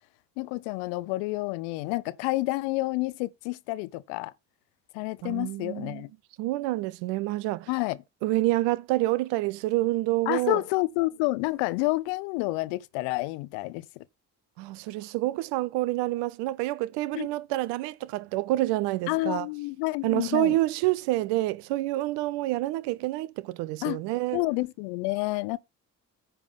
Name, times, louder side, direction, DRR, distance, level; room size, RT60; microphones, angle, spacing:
voice 1, 0.4-4.3 4.9-6.1 7.7-8.0 10.3-13.9 17.1-17.3 19.1-20.6 23.8-24.0 24.3-25.6, left 21 dB, 60° left, 0.8 m, -29 dB
voice 2, 5.2-6.0 6.4-7.7 8.2-10.6 14.6-19.5 20.0-24.4, right 17 dB, 60° right, 0.7 m, -28 dB
10.0 x 3.6 x 6.7 m
figure-of-eight pair, 45°, 49 cm